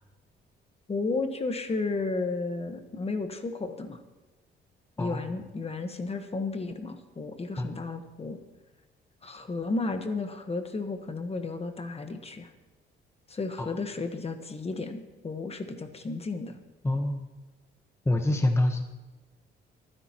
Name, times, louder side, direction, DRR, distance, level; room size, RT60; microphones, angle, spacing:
voice 1, 0.9-4.0 5.0-8.4 9.2-12.5 13.3-16.6, left 3 dB, 30° left, 7 dB, 1.3 m, -33 dB
voice 2, 16.8-17.2 18.1-18.8, left 1 dB, 15° left, 5 dB, 1.1 m, -25 dB
28.5 x 10.0 x 3.0 m, 1.2 s
cardioid pair, 90°, 20 cm